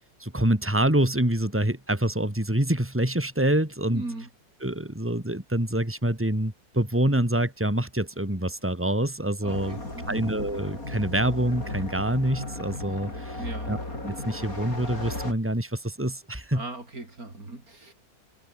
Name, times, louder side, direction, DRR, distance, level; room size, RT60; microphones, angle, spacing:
voice 1, 0.2-4.0 4.6-9.8 10.1-13.4 13.7-13.8 14.0-16.6, right 1 dB, 5° right, 3.8 m, -26 dB
voice 2, 3.9-4.3 9.4-10.2 13.3-13.7 16.5-17.9, right 2 dB, 50° right, 5.9 m, -38 dB
sound 1, 9.5-15.3, left 2 dB, 50° left, 8.2 m, -35 dB
omnidirectional pair, 1.9 m